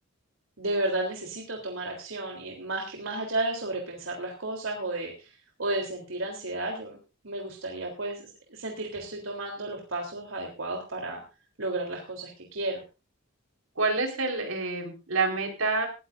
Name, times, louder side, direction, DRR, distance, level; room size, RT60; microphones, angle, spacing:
voice 1, 0.6-7.0 7.2-11.2 11.6-12.8, right 2 dB, 70° right, 0 dB, 3.5 m, -33 dB
voice 2, 13.8-15.9, right 3 dB, 90° right, 4 dB, 4.4 m, -27 dB
19.0 x 15.0 x 2.6 m, 0.31 s
head